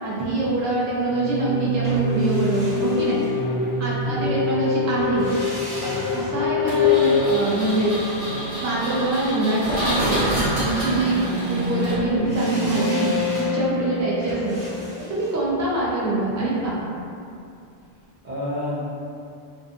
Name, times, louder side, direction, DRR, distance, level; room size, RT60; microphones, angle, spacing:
voice 1, 0.0-3.2 3.8-5.3 5.8-7.9 8.6-11.2 11.5-14.6 15.0-16.8, right 2 dB, 30° right, -7 dB, 0.3 m, -24 dB
sound 1, 1.1-15.7, left 4 dB, 65° left, 0.7 m, -26 dB
sound 2, 1.8-4.0 5.0-9.2 12.2-17.2 17.5-17.6, equal, 25° left, 0.9 m, -39 dB
voice 2, 3.9-4.4 18.2-18.8, left 1 dB, 50° right, -9 dB, 0.7 m, -30 dB
Engine, 6.7-12.3, equal, 75° right, 1.2 m, -28 dB
2.6 x 2.4 x 2.3 m, 2.5 s
omnidirectional pair, 1.0 m